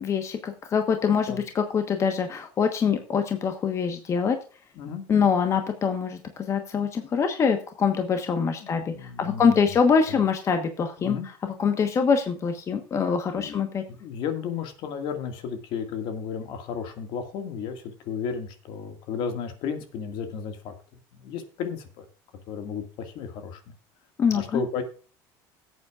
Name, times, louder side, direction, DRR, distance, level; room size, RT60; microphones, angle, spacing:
voice 1, 0.0-4.4 5.1-6.2 6.5-11.2 11.6-13.8 24.2-24.6, left 6 dB, 35° left, 7 dB, 1.2 m, -24 dB
voice 2, 4.8-5.1 8.6-9.7 10.1-10.2 11.0-11.3 13.4-13.6 13.9-20.7 21.1-22.1 22.5-23.6 24.3-24.8, left 6 dB, 60° left, 7 dB, 2.0 m, -33 dB
17.0 x 8.3 x 2.4 m, 0.37 s
cardioid pair, 130°, 9 cm